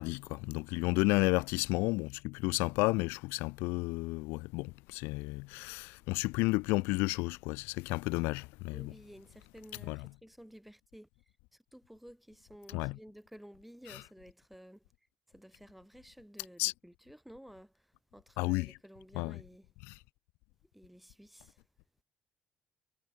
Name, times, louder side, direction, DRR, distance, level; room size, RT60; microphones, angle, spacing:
voice 1, 0.0-8.9 9.9-10.0 12.7-12.9 13.9-14.0 16.6-16.7 18.4-18.7 19.2-19.4 19.9-20.0, left 25 dB, 65° left, 0.5 m, -32 dB
voice 2, 0.8-1.3 8.7-11.1 11.5-14.9 15.3-19.7 20.7-21.6, equal, 5° right, 4.8 m, -54 dB
figure-of-eight pair, 45°, 4 cm